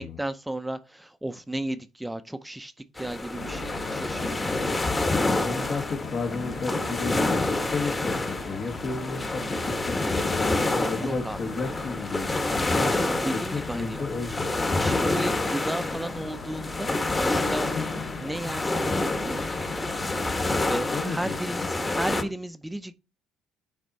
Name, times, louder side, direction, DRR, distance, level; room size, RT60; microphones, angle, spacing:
voice 1, 0.0-4.5 10.9-11.4 12.9-14.0 14.7-17.7 18.2-19.6 20.7-22.9, right 1 dB, 5° right, 0.7 m, -34 dB
sound 1, 3.0-22.2, left 2 dB, 20° left, 1.5 m, -28 dB
sound 2, 3.3-21.4, left 4 dB, 65° left, 1.7 m, -38 dB
voice 2, 5.2-13.0 13.3-14.5 15.0-15.2 20.9-22.0, left 4 dB, 45° left, 1.6 m, -33 dB
9.8 x 4.2 x 4.1 m
supercardioid pair, 85°, 0 cm